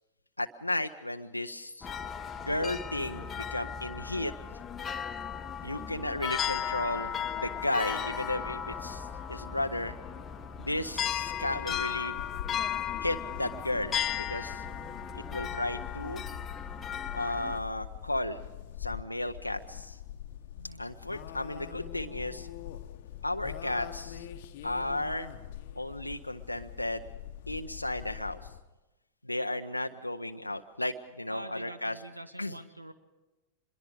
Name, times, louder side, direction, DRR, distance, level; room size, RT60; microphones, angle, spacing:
voice 1, 0.4-1.9 2.4-4.3 5.6-10.0 10.6-12.2 13.0-14.6 15.3-16.2 17.1-18.4 18.8-20.0 20.8-22.5 23.2-24.3 24.6-25.3 25.8-27.0 27.5-28.4 29.2-31.9 32.4-32.5, left 1 dB, 85° left, 6 dB, 0.6 m, -34 dB
sound 1, 1.8-17.6, left 8 dB, 20° left, 1.0 m, -36 dB
sound 2, 11.0-28.6, left 12 dB, 50° left, 1.0 m, -44 dB
voice 2, 31.3-32.9, right 1 dB, 85° right, 11 dB, 1.2 m, -45 dB
25.0 x 22.0 x 4.9 m, 1.1 s
figure-of-eight pair, 90°, 0 cm